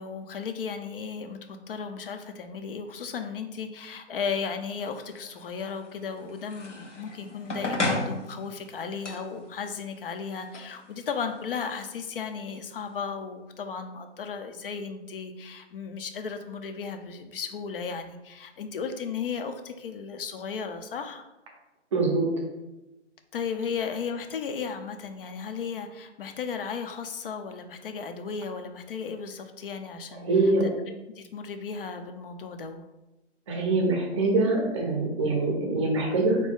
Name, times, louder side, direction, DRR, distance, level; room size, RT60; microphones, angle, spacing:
voice 1, 0.0-21.2 23.3-30.7 31.2-32.8, left 6 dB, 50° left, 7 dB, 0.5 m, -35 dB
sound 1, 4.8-13.0, left 2 dB, 85° left, 0.9 m, -36 dB
voice 2, 21.9-22.3 30.2-30.6 33.5-36.4, right 3 dB, 25° right, 0 dB, 0.6 m, -24 dB
4.1 x 2.7 x 3.5 m, 0.99 s
figure-of-eight pair, 140°, 36 cm